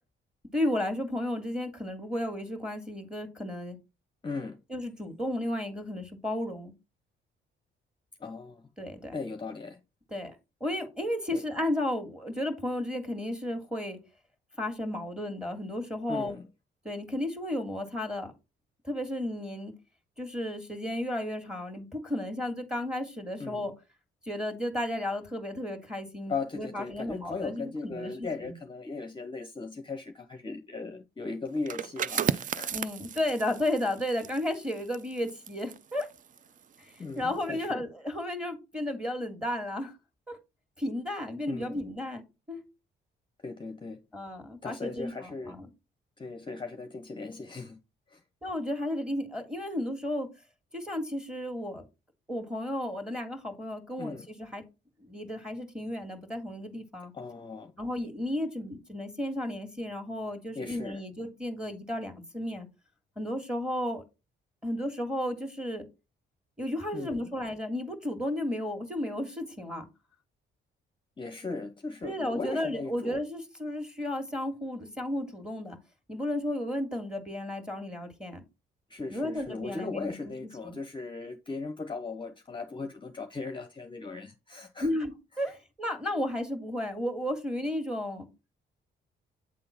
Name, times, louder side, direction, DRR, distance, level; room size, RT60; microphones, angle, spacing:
voice 1, 0.5-3.8 4.7-6.7 8.8-9.1 10.1-10.3 10.6-14.0 14.6-16.3 16.8-18.3 18.8-19.7 20.2-23.7 24.3-28.1 28.4-28.5 32.7-36.1 36.8-39.9 40.3-40.4 40.8-42.6 44.1-45.7 48.4-50.3 50.7-51.8 52.3-54.6 55.0-57.1 57.8-62.7 63.2-64.0 64.6-65.9 66.6-69.9 72.0-75.8 76.1-78.4 79.1-80.1 80.6-80.8 84.8-88.3, left 1 dB, 5° right, 1.9 m, -33 dB
voice 2, 4.2-4.6 8.2-8.7 9.1-9.8 11.3-11.4 16.1-16.5 23.4-23.7 26.3-32.7 37.0-37.8 41.5-41.8 43.4-44.0 44.6-45.5 46.2-47.8 48.1-48.2 54.0-54.3 57.1-57.7 60.5-61.0 66.9-67.2 71.2-73.2 78.9-84.9, left 3 dB, 25° left, 0.8 m, -38 dB
sound 1, 31.6-37.1 37.4-37.7, right 8 dB, 40° right, 0.4 m, -35 dB
8.5 x 3.7 x 4.3 m
cardioid pair, 90°, 20 cm